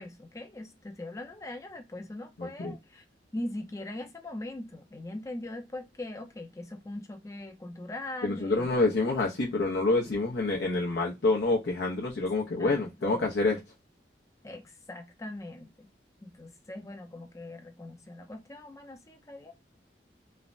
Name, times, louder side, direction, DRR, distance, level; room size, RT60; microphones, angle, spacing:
voice 1, 0.0-3.0 3.3-8.8 12.6-13.3 14.4-15.7 16.2-19.5, left 1 dB, 20° left, 0.4 m, -41 dB
voice 2, 2.4-2.7 8.2-13.6, left 3 dB, 75° left, 0.6 m, -27 dB
3.2 x 2.0 x 2.4 m
head